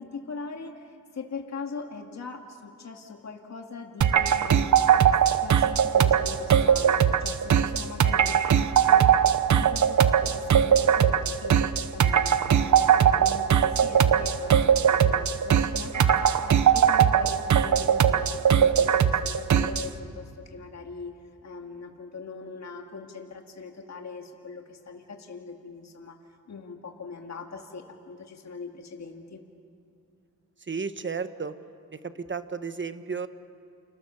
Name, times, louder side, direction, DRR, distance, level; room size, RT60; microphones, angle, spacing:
voice 1, 0.0-5.0 5.4-9.2 9.5-11.6 11.9-26.2 26.5-29.4, left 4 dB, 55° left, 2 dB, 2.2 m, -41 dB
sound 1, 4.0-19.9, right 8 dB, 60° right, 1.0 m, -21 dB
voice 2, 30.7-31.5 32.2-33.3, right 5 dB, 35° right, 10 dB, 1.4 m, -32 dB
29.5 x 27.5 x 7.2 m, 2.5 s
cardioid pair, 75°, 32 cm